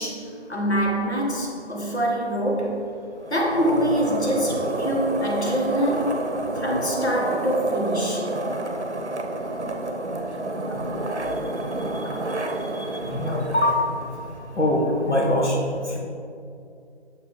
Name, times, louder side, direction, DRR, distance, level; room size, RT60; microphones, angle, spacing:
voice 1, 0.0-2.9 3.3-6.2 6.5-8.3, equal, 75° left, -1 dB, 1.5 m, -25 dB
sound 1, 3.2-14.7, right 2 dB, 85° right, 0.8 m, -29 dB
voice 2, 12.7-13.8 14.6-15.6 15.9-16.0, left 1 dB, 90° left, -2 dB, 1.5 m, -23 dB
6.6 x 5.0 x 3.3 m, 2.5 s
figure-of-eight pair, 160°, 34 cm